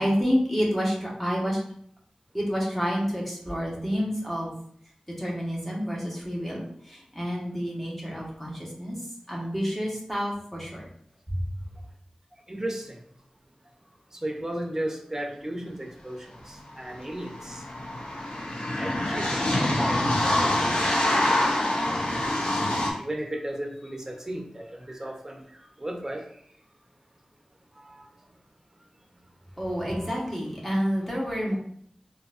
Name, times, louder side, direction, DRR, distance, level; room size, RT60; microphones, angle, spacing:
voice 1, 0.0-1.6 2.3-4.5 5.2-9.0 9.3-10.8 29.6-31.6, equal, 5° left, -4 dB, 1.3 m, -29 dB
voice 2, 12.5-13.0 14.1-17.6 18.8-21.0 21.2-21.4 23.0-26.2 27.8-28.1 29.8-30.2, right 1 dB, 20° right, 1 dB, 0.8 m, -35 dB
sound 1, 16.4-16.5 16.7-22.9, left 1 dB, 70° left, 0.7 m, -25 dB
3.9 x 2.6 x 2.5 m, 0.63 s
wide cardioid pair, 50°, 2 cm